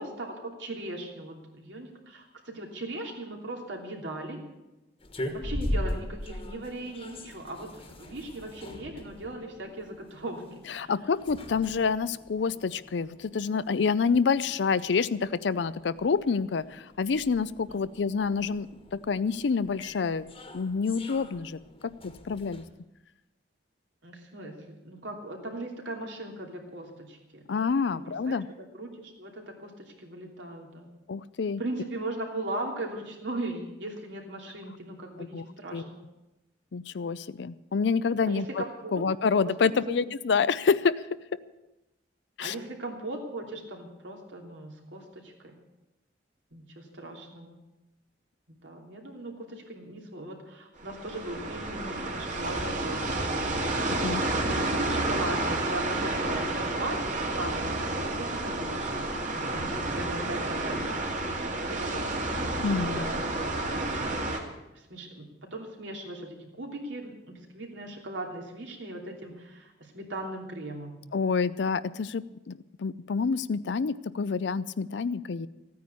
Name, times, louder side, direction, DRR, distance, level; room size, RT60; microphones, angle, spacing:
voice 1, 0.0-4.4 5.3-10.9 17.7-18.0 24.0-27.4 27.9-28.4 28.7-30.9 31.6-36.0 38.3-39.0 39.4-39.5 39.9-40.0 42.4-45.5 46.5-47.6 48.5-53.9 54.2-62.3 62.8-64.1 64.7-71.0, right 1 dB, 75° right, 1 dB, 3.0 m, -39 dB
sound 1, 5.0-22.7, left 1 dB, 30° left, 1.4 m, -41 dB
voice 2, 10.7-22.6 27.5-28.5 31.1-31.6 35.2-35.4 35.7-35.8 36.7-38.6 38.9-41.0 42.4-42.5 53.9-54.2 62.6-63.0 71.1-75.5, left 5 dB, 70° left, 16 dB, 0.5 m, -28 dB
sound 2, 50.8-64.4, right 2 dB, 45° right, 2.1 m, -30 dB
14.5 x 9.5 x 8.2 m, 0.98 s
head